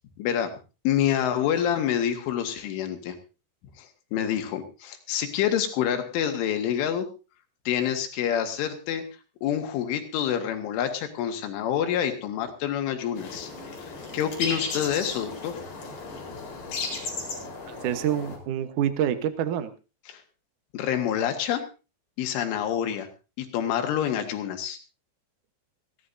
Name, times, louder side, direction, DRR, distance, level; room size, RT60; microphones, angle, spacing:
voice 1, 0.2-0.5 0.9-3.2 3.8-7.1 7.7-9.0 9.4-13.5 13.8-15.6 20.1-20.2 20.7-21.6 22.2-23.1 23.4-24.8, left 9 dB, 90° left, 6 dB, 4.2 m, -27 dB
sound 1, 13.2-18.4, left 4 dB, 60° left, 6.1 m, -35 dB
voice 2, 17.7-19.7, right 10 dB, 85° right, 9 dB, 1.8 m, -27 dB
21.0 x 16.5 x 2.7 m, 0.32 s
omnidirectional pair, 5.4 m